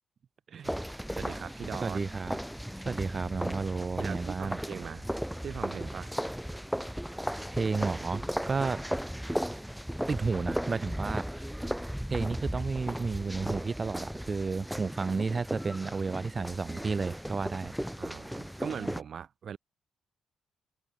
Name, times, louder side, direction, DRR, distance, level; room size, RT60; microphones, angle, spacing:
voice 1, 0.5-2.0 4.0-5.1 5.4-6.1 18.0-19.6, right 7 dB, 55° right, 2.9 m, -40 dB
sound 1, 0.6-19.0, equal, ahead, 1.1 m, -36 dB
voice 2, 1.8-2.4 2.8-4.6 7.5-8.8 10.1-11.3 12.1-17.7, right 4 dB, 30° right, 0.7 m, -32 dB
cardioid pair, 90°, 0 cm